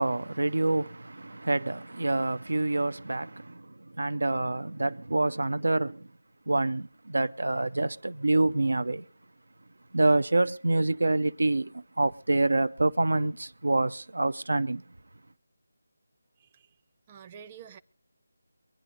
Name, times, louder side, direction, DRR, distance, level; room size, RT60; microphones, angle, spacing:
voice 1, 0.0-6.1 6.5-9.0 9.9-14.8, right 2 dB, 75° right, 0.6 m, -27 dB
voice 2, 16.4-16.7 17.1-17.8, right 8 dB, 25° right, 0.7 m, -48 dB
23.5 x 10.0 x 3.9 m
figure-of-eight pair, 160°, 0 cm